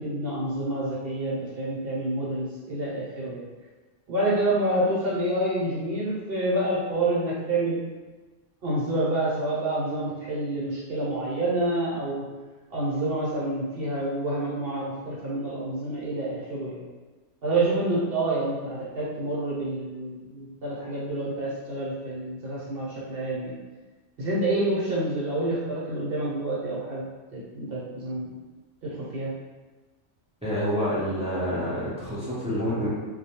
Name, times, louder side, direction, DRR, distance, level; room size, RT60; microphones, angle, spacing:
voice 1, 0.0-3.5 4.1-7.8 8.6-12.3 12.7-16.8 17.4-23.6 24.2-27.0 27.3-28.4 28.8-29.3, right 1 dB, 55° right, -6 dB, 0.8 m, -28 dB
voice 2, 30.4-32.9, equal, 10° right, -10 dB, 0.3 m, -28 dB
2.2 x 2.2 x 2.8 m, 1.3 s
omnidirectional pair, 1.3 m